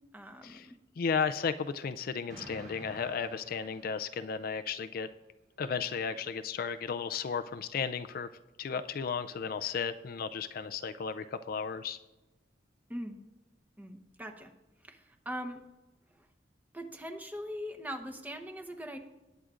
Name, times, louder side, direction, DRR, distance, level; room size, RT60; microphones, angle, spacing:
voice 1, 0.1-0.8 12.9-13.2 13.8-14.5 14.8-15.6 16.7-19.0, equal, 10° right, 4 dB, 0.9 m, -41 dB
voice 2, 1.0-5.1 5.6-8.3 8.6-12.0, left 6 dB, 55° left, 10 dB, 0.4 m, -34 dB
Explosion, 2.3-4.5, right 1 dB, 55° right, 4.4 m, -51 dB
19.0 x 9.0 x 2.5 m, 1.1 s
head